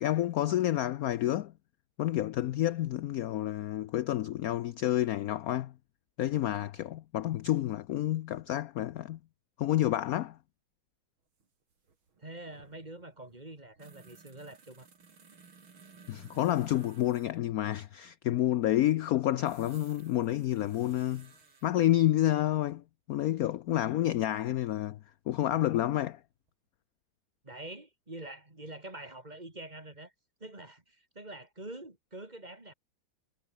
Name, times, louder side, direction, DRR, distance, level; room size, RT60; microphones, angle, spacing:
voice 1, 0.0-1.5 2.0-5.7 6.2-9.2 9.6-10.4 16.1-21.3 21.6-25.0 25.3-26.2, left 13 dB, 75° left, 0.8 m, -29 dB
sound 1, 11.4-11.5 11.7-17.4 19.5-21.7 23.9-24.0 25.5-26.2 26.5-26.6, right 5 dB, 90° right, 4.0 m, -58 dB
voice 2, 12.2-14.9 27.4-30.1 30.4-32.7, right 2 dB, 20° right, 3.2 m, -45 dB
omnidirectional pair, 2.2 m